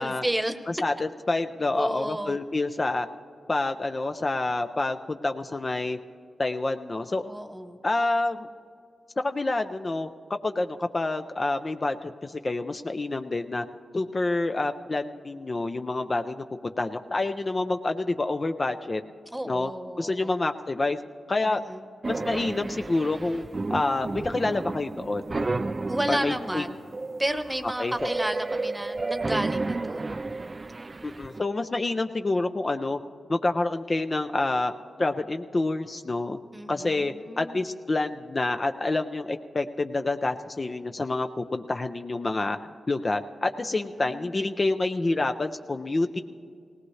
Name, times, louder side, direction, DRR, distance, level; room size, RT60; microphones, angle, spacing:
voice 1, 0.0-0.6 1.7-2.4 7.2-7.8 19.3-20.4 21.4-21.8 25.9-26.7 27.2-30.1 36.5-37.6 43.7-44.3, right 1 dB, 15° right, 9 dB, 1.1 m, -32 dB
voice 2, 0.7-3.1 3.5-6.0 6.4-7.2 7.8-8.5 9.2-10.1 10.4-13.6 13.9-19.0 19.4-19.7 20.0-21.0 21.3-21.6 22.1-23.4 23.7-25.5 26.1-26.6 27.8-28.1 31.0-33.0 33.3-34.7 35.0-36.4 36.7-42.6 42.9-46.2, left 2 dB, 40° left, 7 dB, 0.6 m, -28 dB
sound 1, 22.0-31.4, right 3 dB, 40° right, 0.4 m, -32 dB
18.5 x 17.5 x 3.2 m, 2.2 s
supercardioid pair, 45°, 0 cm